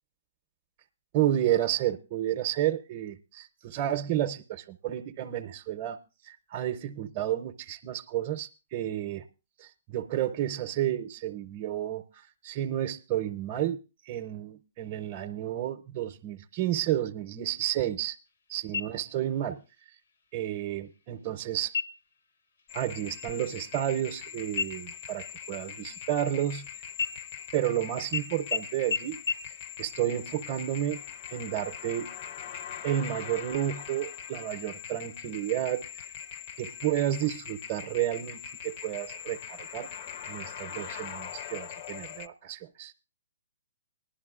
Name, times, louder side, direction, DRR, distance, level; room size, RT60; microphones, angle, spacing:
voice 1, 1.1-6.0 6.2-9.2 9.6-13.8 14.1-18.2 18.5-19.6 20.3-21.8 22.7-26.6 27.5-29.2 29.8-31.0 31.3-32.1 32.8-35.8 36.6-39.9 40.2-42.9, right 12 dB, 30° right, 0.6 m, -31 dB
sound 1, 18.7-19.4 19.8-19.9 20.4-21.0 21.7-22.2 22.6-22.8 23.1-24.2 24.6-26.6 26.9-27.7 28.1-28.2 28.5-28.6 28.9-29.0 29.3-29.4, left 6 dB, 75° left, 0.9 m, -34 dB
sound 2, 22.7-42.3, left 9 dB, 40° left, 0.5 m, -42 dB
19.5 x 11.5 x 2.4 m
hypercardioid pair, 145°, 0 cm